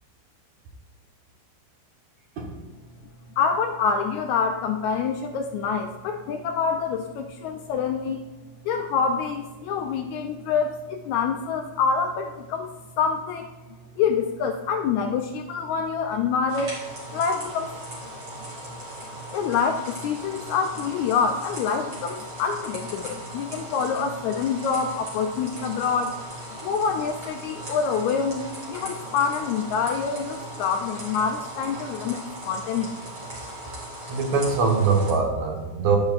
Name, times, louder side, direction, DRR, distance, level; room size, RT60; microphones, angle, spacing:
voice 1, 3.4-8.2 8.7-12.7 13.0-13.5 14.0-16.7 17.1-17.7 19.3-26.2 26.6-32.9, left 6 dB, 80° left, 5 dB, 1.8 m, -26 dB
sound 1, 16.5-35.1, right 1 dB, 40° right, 3.6 m, -38 dB
voice 2, 34.1-36.0, right 4 dB, 65° right, 1 dB, 2.3 m, -22 dB
10.5 x 10.5 x 2.4 m, 1.2 s
omnidirectional pair, 3.7 m